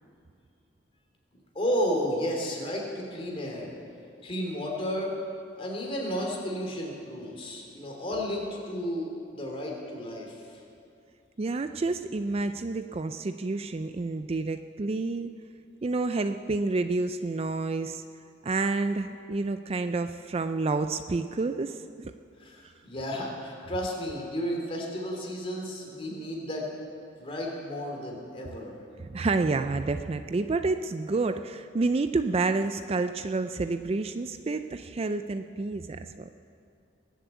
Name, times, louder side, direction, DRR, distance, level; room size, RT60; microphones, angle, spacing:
voice 1, 1.5-3.7 4.2-5.1 5.6-10.3 22.4-26.8 27.2-28.8, equal, 30° left, -1 dB, 3.0 m, -32 dB
voice 2, 11.4-15.3 15.8-18.0 18.4-21.8 29.0-36.3, right 3 dB, 30° right, 9 dB, 0.4 m, -29 dB
21.0 x 7.5 x 8.3 m, 2.5 s
head